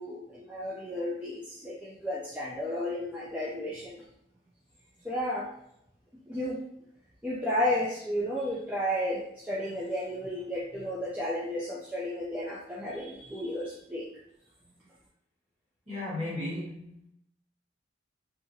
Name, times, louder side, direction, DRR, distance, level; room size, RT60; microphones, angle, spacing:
voice 1, 0.0-4.0 5.0-5.5 6.3-6.6 7.2-14.1, left 1 dB, 5° right, 0.3 m, -33 dB
voice 2, 15.9-17.1, left 1 dB, 35° right, 1.3 m, -35 dB
2.7 x 2.5 x 2.7 m
head